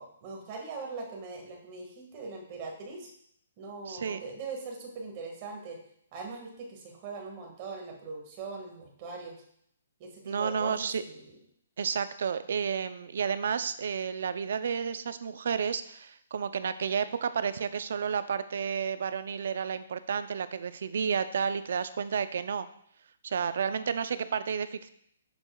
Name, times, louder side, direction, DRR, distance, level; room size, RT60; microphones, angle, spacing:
voice 1, 0.0-3.1 3.6-5.8 6.1-9.4 10.0-11.3, right 4 dB, 30° right, 1 dB, 1.7 m, -41 dB
voice 2, 3.9-4.2 10.3-11.0 11.8-22.7 23.2-24.9, right 6 dB, 65° right, 12 dB, 0.5 m, -31 dB
7.7 x 6.4 x 2.3 m, 0.68 s
hypercardioid pair, 155°, 0 cm